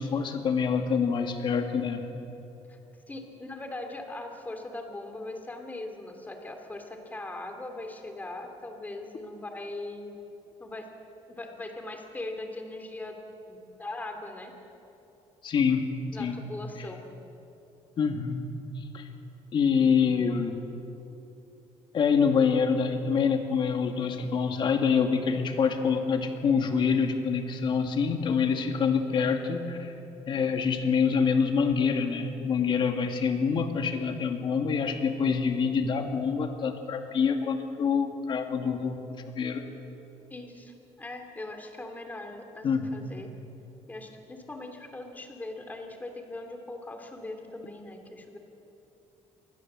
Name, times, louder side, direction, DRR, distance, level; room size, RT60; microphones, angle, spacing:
voice 1, 0.0-2.0 15.4-15.8 16.2-16.4 18.0-18.5 18.9-19.1 19.5-20.6 21.9-29.9 30.3-39.0 39.3-39.6 42.6-42.9, left 6 dB, 40° left, 5 dB, 2.2 m, -26 dB
voice 2, 3.1-10.1 10.6-10.9 11.3-13.2 13.5-14.5 16.1-17.0 40.3-43.3 43.9-48.4, left 2 dB, 15° left, 4 dB, 2.9 m, -40 dB
27.5 x 20.5 x 7.6 m, 2.9 s
cardioid pair, 150°, 12 cm